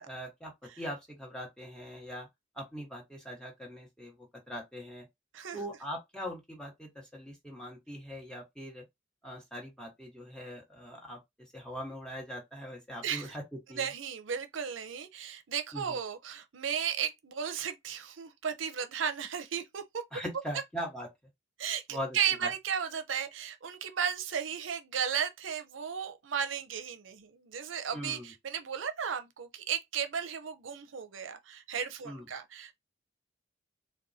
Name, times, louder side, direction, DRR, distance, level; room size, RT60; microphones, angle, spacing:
voice 1, 0.0-2.3 2.5-5.1 5.5-8.8 9.2-11.2 11.5-13.4 13.7-13.9 15.7-16.0 20.1-21.1 21.9-22.5 27.9-28.3 32.0-32.3, equal, 5° left, 1.3 m, -41 dB
voice 2, 13.0-13.3 13.7-20.0 21.6-32.8, right 8 dB, 80° right, 0.6 m, -35 dB
4.0 x 2.3 x 2.7 m
head